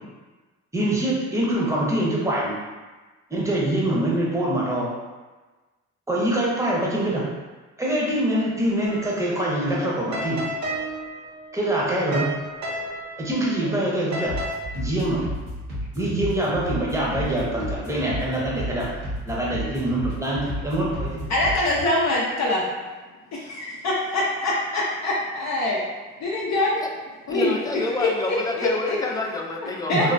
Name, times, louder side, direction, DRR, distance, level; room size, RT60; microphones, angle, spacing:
voice 1, 0.7-2.6 3.3-4.9 6.1-7.2 7.8-10.4 11.5-12.3 13.2-14.3 14.7-15.2 15.9-18.9 19.3-21.2 29.9-30.1, right 1 dB, 10° right, -5 dB, 0.7 m, -24 dB
sound 1, 8.8-14.5, right 1 dB, 65° right, 0.7 m, -33 dB
sound 2, 14.3-21.9, equal, 85° right, 1.4 m, -33 dB
voice 2, 21.3-22.7 23.3-25.8 26.2-26.8 27.3-27.6 28.0-29.0 29.9-30.1, left 2 dB, 65° left, -5 dB, 0.6 m, -24 dB
voice 3, 27.3-30.1, left 2 dB, 15° left, 1 dB, 0.3 m, -29 dB
3.2 x 2.0 x 2.5 m, 1.3 s
cardioid pair, 90°, 30 cm